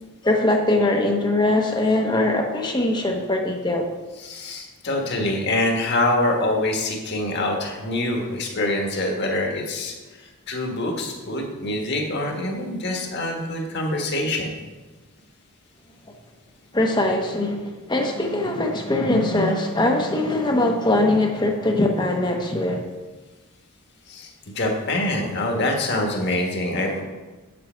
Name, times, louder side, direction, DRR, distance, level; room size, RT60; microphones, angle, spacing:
voice 1, 0.2-3.9 16.7-22.9, left 2 dB, 20° left, 2 dB, 0.8 m, -21 dB
voice 2, 4.2-9.9 10.5-14.5 24.1-24.3 24.5-27.0, left 1 dB, 50° left, 1 dB, 1.6 m, -25 dB
8.4 x 7.7 x 4.5 m, 1.2 s
head